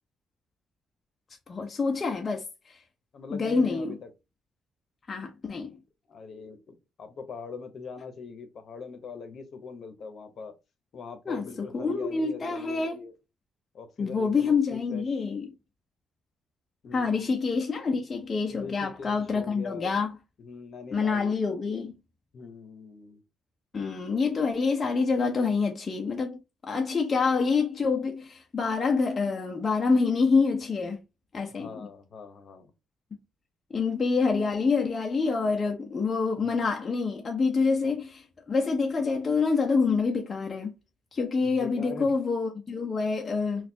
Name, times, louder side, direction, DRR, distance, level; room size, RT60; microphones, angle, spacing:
voice 1, 1.5-2.8 3.3-4.0 5.1-5.8 11.3-13.0 14.0-15.5 16.9-20.2 20.9-21.9 23.7-26.4 26.6-31.0 31.3-31.9 33.7-40.7 41.1-43.7, left 4 dB, 35° left, 0.6 m, -27 dB
voice 2, 3.1-4.1 6.1-10.5 10.9-13.1 13.7-15.0 16.8-17.3 18.5-19.9 20.4-21.3 22.3-23.2 31.5-32.7 36.4-36.7 41.4-42.1, left 4 dB, 60° left, 0.9 m, -42 dB
4.0 x 2.4 x 2.7 m
cardioid pair, 90°, 0 cm